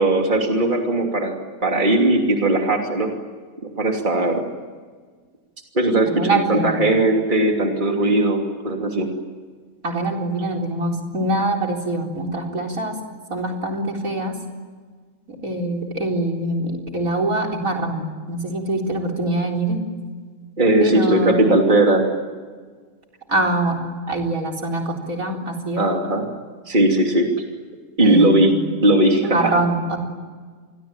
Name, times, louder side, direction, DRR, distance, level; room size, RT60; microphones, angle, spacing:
voice 1, 0.0-1.4 1.6-3.1 3.6-4.4 5.7-9.1 20.6-22.1 25.8-26.3 26.7-27.3 28.0-28.6 28.8-29.5, right 1 dB, 35° right, 2 dB, 3.1 m, -18 dB
voice 2, 6.0-6.9 9.8-13.0 13.3-14.4 15.3-19.9 20.8-21.5 23.3-25.9 28.0-28.7 29.2-30.0, right 2 dB, 75° right, 1 dB, 4.5 m, -24 dB
28.5 x 23.0 x 9.0 m, 1.5 s
omnidirectional pair, 1.5 m